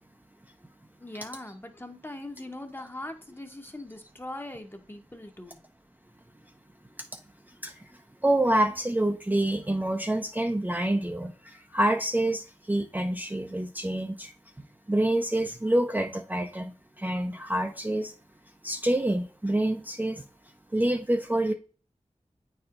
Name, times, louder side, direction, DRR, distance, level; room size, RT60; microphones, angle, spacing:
voice 1, 1.0-5.6, left 1 dB, 20° left, 5 dB, 0.9 m, -41 dB
voice 2, 8.2-14.3 14.9-18.1 18.6-20.2 20.7-21.5, right 1 dB, 15° right, 3 dB, 0.5 m, -27 dB
8.7 x 4.3 x 2.5 m, 0.39 s
wide cardioid pair, 45°, 12 cm